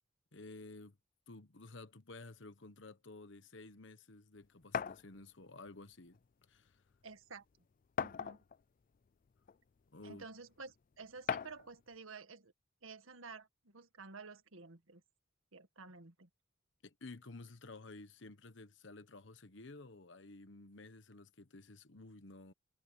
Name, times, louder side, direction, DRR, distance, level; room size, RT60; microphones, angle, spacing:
voice 1, 0.3-1.0 1.3-6.2 6.5-6.8 9.9-10.3 16.8-22.5, left 2 dB, 60° left, 1.2 m, -53 dB
sound 1, 4.7-5.0 6.2-6.3 6.7-6.8 8.0-8.6 9.5-9.6 11.3-11.7, left 7 dB, 40° left, 0.3 m, -37 dB
voice 2, 7.0-7.4 8.0-8.4 10.0-12.5 12.8-15.0 15.5-16.3, right 4 dB, 80° right, 1.8 m, -52 dB
head